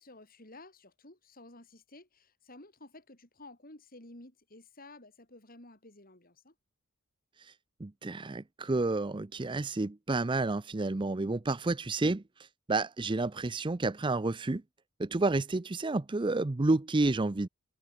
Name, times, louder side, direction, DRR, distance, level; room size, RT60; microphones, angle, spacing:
voice 1, 0.0-6.5, left 2 dB, 40° left, 4.5 m, -53 dB
voice 2, 7.8-14.6 15.0-17.5, right 2 dB, 20° right, 0.5 m, -30 dB
head